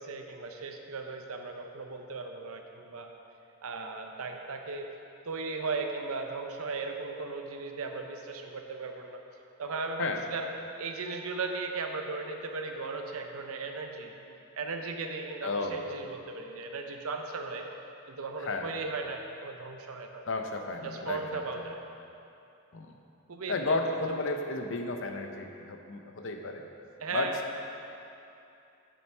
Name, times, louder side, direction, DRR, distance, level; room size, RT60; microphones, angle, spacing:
voice 1, 0.0-3.1 3.6-4.9 5.3-9.2 9.6-10.4 10.8-17.6 18.1-20.2 20.8-21.8 23.3-23.8 27.0-27.3, right 4 dB, 75° right, 4 dB, 0.6 m, -37 dB
voice 2, 15.4-15.8 18.4-18.7 20.3-21.7 22.7-22.9 23.5-26.6 27.1-27.3, left 3 dB, 60° left, 4 dB, 0.6 m, -33 dB
7.2 x 6.7 x 4.4 m, 2.8 s
head